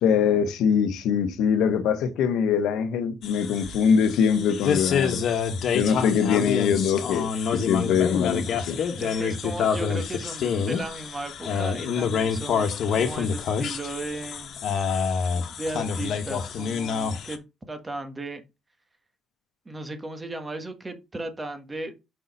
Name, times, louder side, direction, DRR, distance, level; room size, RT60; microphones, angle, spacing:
voice 1, 0.0-5.3 5.7-8.8, left 7 dB, 90° left, 0.9 m, -23 dB
sound 1, 3.2-17.4, left 6 dB, 70° left, 1.2 m, -27 dB
voice 2, 9.0-14.6 15.3-17.4 17.7-18.4 19.6-21.9, right 2 dB, 20° right, 1.3 m, -36 dB
5.5 x 4.1 x 5.2 m
cardioid pair, 90°, 0 cm